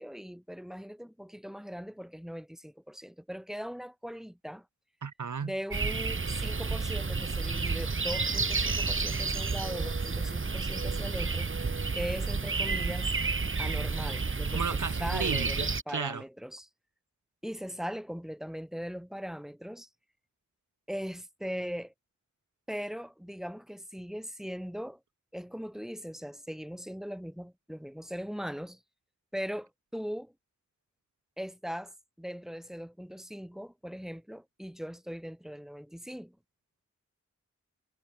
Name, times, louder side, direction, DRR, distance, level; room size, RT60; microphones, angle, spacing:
voice 1, 0.0-4.7 5.4-11.5 11.9-13.1 13.6-16.7 17.4-19.9 20.9-21.9 22.7-25.0 25.3-28.8 29.3-30.3 31.4-36.4, equal, ahead, 7.1 m, -40 dB
voice 2, 5.0-5.5 14.5-16.2, right 6 dB, 85° right, 4.2 m, -34 dB
sound 1, 5.7-15.8, right 4 dB, 45° right, 2.4 m, -31 dB
wide cardioid pair, 90°, 30 cm